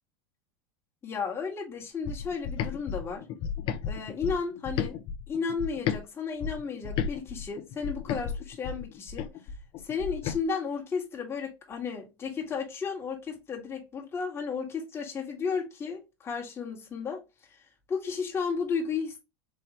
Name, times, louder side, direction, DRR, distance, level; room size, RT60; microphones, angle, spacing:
voice 1, 1.0-3.3 3.9-5.0 5.3-9.3 9.8-17.6 17.9-19.2, left 5 dB, 20° left, 1.7 m, -33 dB
sound 1, 2.1-6.0 6.4-10.4, left 7 dB, 45° left, 0.6 m, -34 dB
4.3 x 3.2 x 3.0 m
supercardioid pair, 130°, 12 cm